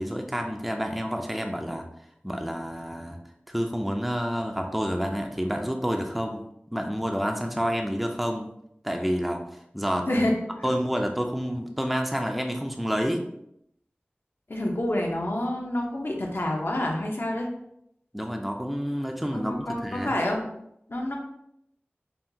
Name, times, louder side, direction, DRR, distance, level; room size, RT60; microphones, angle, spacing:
voice 1, 0.0-1.8 2.2-3.2 3.5-6.4 6.7-8.5 8.8-10.3 10.6-13.2 18.1-20.1, equal, ahead, 3 dB, 0.4 m, -29 dB
voice 2, 14.5-17.5 19.3-20.4 20.9-21.2, left 1 dB, 65° left, 0 dB, 0.8 m, -28 dB
5.5 x 2.3 x 2.7 m, 0.78 s
wide cardioid pair, 40°, 4 cm